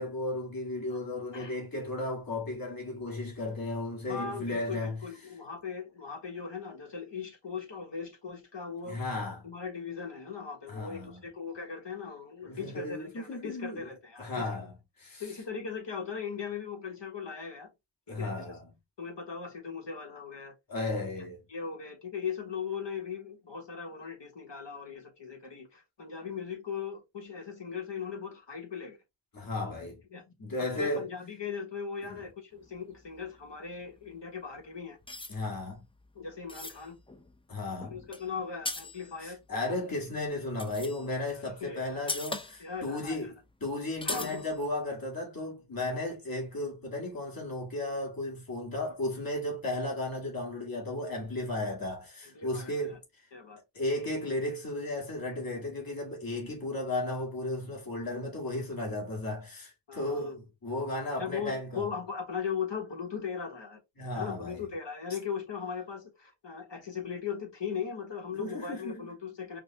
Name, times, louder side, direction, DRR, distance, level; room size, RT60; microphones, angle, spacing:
voice 1, 0.0-5.0 8.9-9.4 10.7-11.2 12.5-13.9 14.2-15.2 18.1-18.7 20.7-21.4 29.3-30.0 30.4-31.1 32.0-32.2 35.3-35.8 37.5-38.0 39.2-43.4 43.6-53.3 53.7-61.9 64.0-64.7 68.3-69.1, left 2 dB, 45° left, 2.0 m, -35 dB
voice 2, 4.1-9.0 9.4-14.5 15.2-17.7 18.1-18.4 19.0-20.5 21.1-21.2 21.5-29.0 30.1-30.2 30.6-35.0 36.1-37.0 37.8-39.4 41.6-42.0 42.6-43.3 44.0-44.5 48.7-48.9 52.3-53.0 53.3-53.6 59.9-60.3 61.2-63.8 64.1-69.6, left 6 dB, 65° left, 1.4 m, -38 dB
sound 1, 32.6-34.7 35.1-39.5 40.2-41.3 41.6-41.7 41.9-42.9 43.2-43.3 43.5-43.6 44.0-44.7, left 2 dB, 10° left, 0.6 m, -41 dB
5.0 x 2.2 x 2.9 m
cardioid pair, 45°, 47 cm